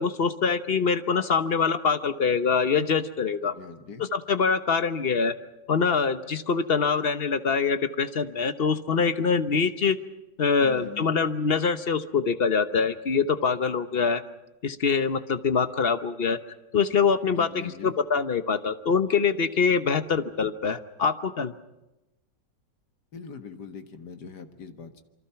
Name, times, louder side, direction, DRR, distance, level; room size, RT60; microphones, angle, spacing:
voice 1, 0.0-3.5 4.1-5.3 5.7-10.0 10.4-14.2 14.6-16.4 16.7-21.5, left 5 dB, 40° left, 11 dB, 0.9 m, -24 dB
voice 2, 3.4-4.1 10.6-11.1 17.4-18.0 23.1-25.0, left 6 dB, 65° left, 8 dB, 2.1 m, -42 dB
27.5 x 24.0 x 5.8 m, 0.96 s
omnidirectional pair, 2.0 m